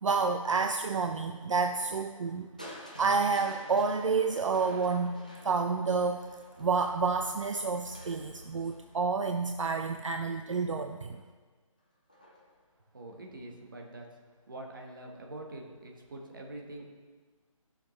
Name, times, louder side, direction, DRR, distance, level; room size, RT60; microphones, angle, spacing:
voice 1, 0.0-5.2 5.4-6.2 6.6-11.2, right 4 dB, 60° right, 6 dB, 0.5 m, -29 dB
Crushing, 2.6-10.5 12.1-12.6 13.1-13.2, equal, 15° left, 0.4 m, -50 dB
voice 2, 12.9-14.1 14.5-16.9, right 2 dB, 35° right, 1 dB, 1.2 m, -44 dB
15.5 x 6.5 x 3.1 m, 1.5 s
hypercardioid pair, 180°, 18 cm